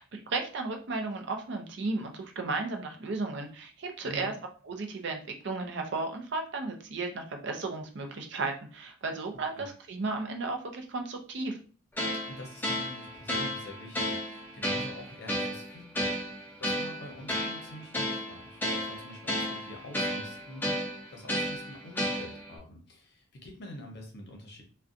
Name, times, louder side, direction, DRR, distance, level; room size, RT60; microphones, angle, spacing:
voice 1, 0.0-4.3 4.6-11.6, right 3 dB, 55° right, 4 dB, 0.5 m, -34 dB
voice 2, 4.0-4.4 9.5-9.7 12.3-20.8 21.1-24.6, left 1 dB, 55° left, 1 dB, 0.7 m, -46 dB
sound 1, 12.0-22.6, equal, 10° left, 0.4 m, -33 dB
2.5 x 2.1 x 2.5 m, 0.40 s
head